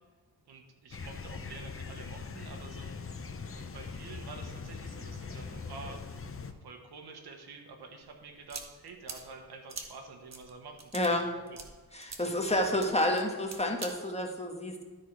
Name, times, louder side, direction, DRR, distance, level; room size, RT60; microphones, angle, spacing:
voice 1, 0.5-3.2 3.5-6.2 6.6-10.8 11.0-11.6, right 4 dB, 90° right, 4 dB, 1.3 m, -48 dB
sound 1, 0.9-6.5, left 5 dB, 35° left, 0.8 m, -42 dB
sound 2, 8.0-13.9, right 4 dB, 45° right, 1.2 m, -46 dB
voice 2, 10.9-11.3 11.9-14.8, left 1 dB, 15° left, 2 dB, 1.4 m, -29 dB
12.5 x 4.4 x 4.7 m, 1.4 s
cardioid pair, 70°, 38 cm